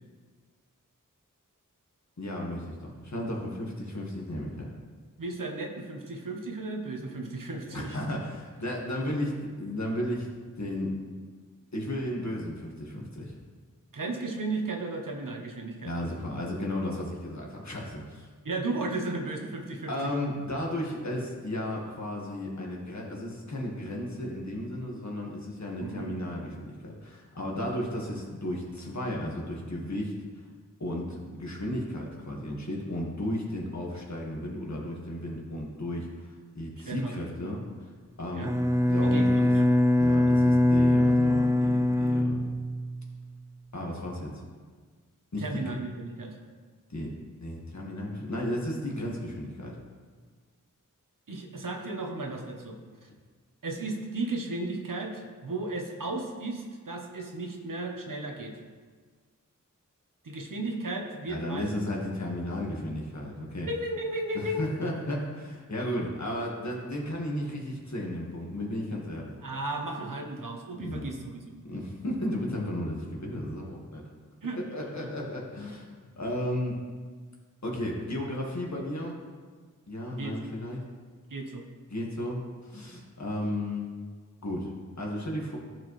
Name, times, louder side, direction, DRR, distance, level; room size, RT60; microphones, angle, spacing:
voice 1, 2.2-4.7 7.7-10.9 11.7-13.4 15.8-18.3 19.9-30.1 30.8-37.6 38.2-38.5 38.9-39.5 40.0-42.5 43.7-44.4 45.3-45.8 46.9-47.1 47.4-49.7 61.3-63.7 64.3-69.3 70.8-71.1 71.7-74.0 74.7-75.9 76.2-76.8 77.6-79.2 79.9-80.8 81.9-83.9 84.4-84.7 85.0-85.6, left 1 dB, 60° left, -2 dB, 1.7 m, -34 dB
voice 2, 5.2-8.0 13.9-15.9 18.4-20.1 25.8-26.1 36.9-37.1 38.3-38.5 39.1-39.7 45.4-46.4 51.3-53.1 53.6-58.6 60.2-61.7 63.7-64.6 69.4-71.5 74.4-74.9 80.1-80.4 81.3-81.7, right 2 dB, 75° right, 2 dB, 1.1 m, -35 dB
Bowed string instrument, 38.4-43.2, left 1 dB, 10° right, 0.4 m, -23 dB
14.0 x 4.7 x 3.2 m, 1.5 s
wide cardioid pair, 60°, 32 cm